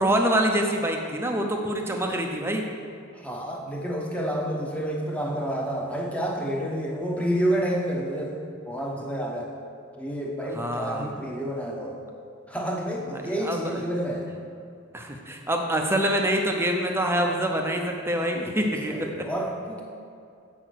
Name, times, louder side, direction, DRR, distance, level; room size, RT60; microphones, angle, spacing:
voice 1, 0.0-2.7 10.6-11.1 13.2-13.8 14.9-19.1, right 1 dB, 10° right, 2 dB, 0.8 m, -25 dB
voice 2, 3.1-8.3 8.6-9.5 10.0-12.0 12.5-14.3 18.6-19.8, equal, 5° left, -1 dB, 1.1 m, -29 dB
7.9 x 6.0 x 6.4 m, 2.5 s
head